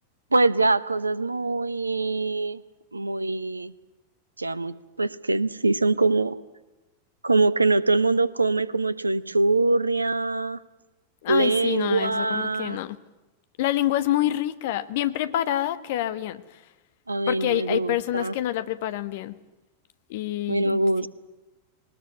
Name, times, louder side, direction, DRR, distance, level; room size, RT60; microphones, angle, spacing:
voice 1, 0.3-2.6 2.9-3.7 4.4-6.4 7.2-10.6 11.3-12.8 17.1-18.3 20.5-21.1, right 3 dB, 80° right, 17 dB, 1.0 m, -23 dB
voice 2, 11.2-13.0 13.6-16.6 17.3-19.3 20.1-20.8, left 13 dB, 50° left, 13 dB, 1.4 m, -27 dB
21.0 x 19.5 x 9.3 m, 1.1 s
figure-of-eight pair, 90°, 0 cm